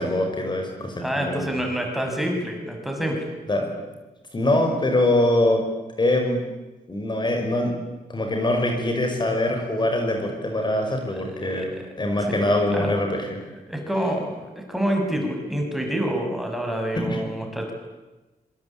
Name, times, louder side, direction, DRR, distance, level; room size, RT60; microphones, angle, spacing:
voice 1, 0.0-1.7 3.5-3.7 4.3-5.6 6.0-6.4 6.9-7.7 8.1-13.4 16.9-17.2, left 1 dB, 30° left, 3 dB, 5.4 m, -23 dB
voice 2, 1.0-3.3 11.1-11.8 12.3-12.9 13.5-17.7, right 1 dB, ahead, 2 dB, 6.3 m, -27 dB
26.5 x 25.0 x 8.7 m, 1.1 s
wide cardioid pair, 135°, 16 cm